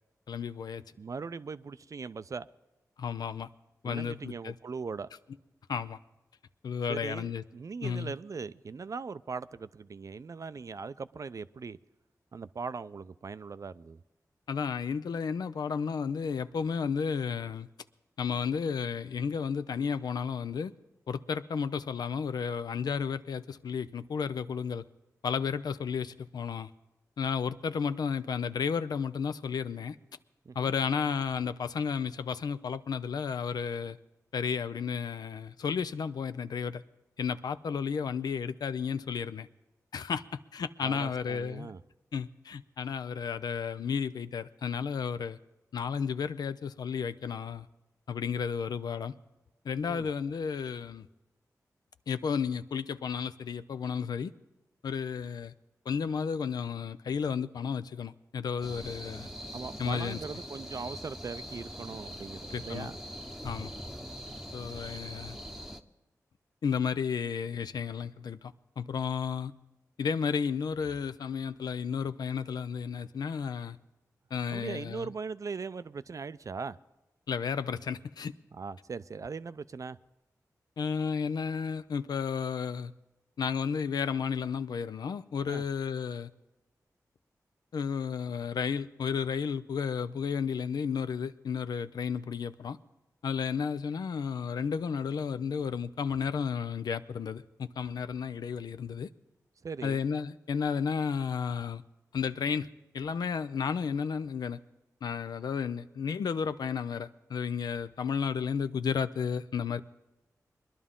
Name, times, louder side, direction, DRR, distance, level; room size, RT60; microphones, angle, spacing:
voice 1, 0.3-0.8 3.0-3.5 3.8-4.5 5.7-6.0 6.6-7.4 7.8-8.1 14.5-17.7 18.2-20.7 21.1-24.8 25.2-26.7 27.2-30.0 30.6-34.0 34.3-36.8 37.2-39.5 39.9-40.2 40.5-41.7 42.1-45.4 45.7-47.7 48.1-49.1 49.6-51.1 52.1-54.3 54.8-55.5 55.9-59.3 59.8-60.2 62.5-62.9 63.4-63.7 64.5-65.4 66.6-69.5 70.0-73.8 74.3-75.1 77.3-78.3 80.8-82.9 83.4-86.3 87.7-92.8 93.2-99.1 99.8-101.8 102.1-102.7 102.9-104.6 105.0-109.8, left 6 dB, 80° left, 0.4 m, -32 dB
voice 2, 1.0-2.5 3.8-5.1 6.9-11.8 12.3-14.0 30.5-30.7 40.8-41.8 49.8-50.1 59.5-63.0 74.5-76.8 78.5-80.0 85.5-85.6 99.6-100.0, right 5 dB, 55° right, 0.4 m, -40 dB
sound 1, 58.6-65.8, equal, 5° right, 0.8 m, -42 dB
21.5 x 11.0 x 3.7 m
cardioid pair, 45°, 7 cm